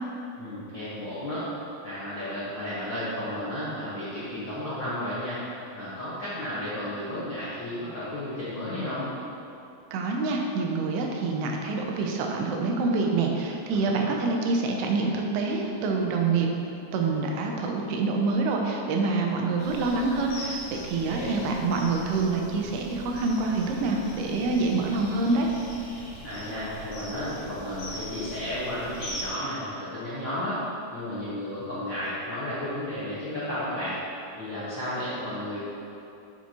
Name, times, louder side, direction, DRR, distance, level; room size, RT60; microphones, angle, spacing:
voice 1, 0.4-1.5 1.8-5.4 5.7-9.1 13.7-14.2 21.0-21.3 26.2-30.6 30.9-33.9 34.4-35.6, left 1 dB, 75° left, -12 dB, 1.0 m, -33 dB
voice 2, 9.9-16.5 16.9-25.5, right 3 dB, 85° right, 1 dB, 2.7 m, -26 dB
sound 1, 19.6-29.3, equal, 55° left, 2.4 m, -41 dB
7.0 x 6.9 x 3.0 m, 2.7 s
omnidirectional pair, 4.6 m